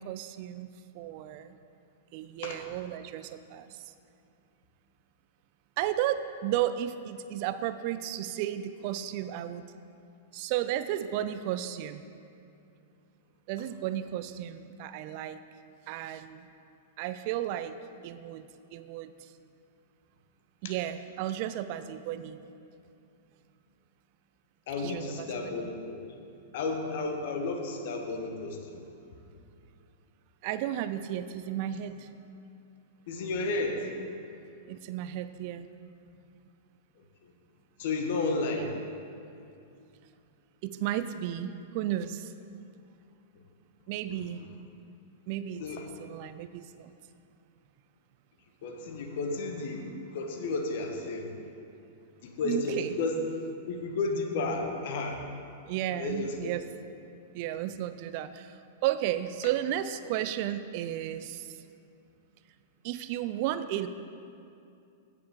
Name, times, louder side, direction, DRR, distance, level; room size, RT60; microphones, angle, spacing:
voice 1, 0.0-1.5 2.1-3.9 5.8-9.6 10.3-12.0 13.5-15.4 15.9-16.5 17.0-17.8 18.0-19.3 20.6-22.4 24.8-25.3 25.5-25.7 30.4-32.1 34.7-35.7 38.6-38.7 40.6-42.3 43.9-44.4 45.3-46.9 52.4-52.9 55.7-56.6 57.3-61.6 62.8-63.9, right 12 dB, 45° right, 12 dB, 0.4 m, -33 dB
voice 2, 24.7-26.0 26.5-28.8 33.1-33.9 37.8-38.7 44.1-44.2 45.6-45.8 48.6-51.3 52.2-53.2 53.7-55.2 55.9-56.5, left 3 dB, 55° left, 4 dB, 1.3 m, -32 dB
16.0 x 6.6 x 3.7 m, 2.5 s
figure-of-eight pair, 100°, 0 cm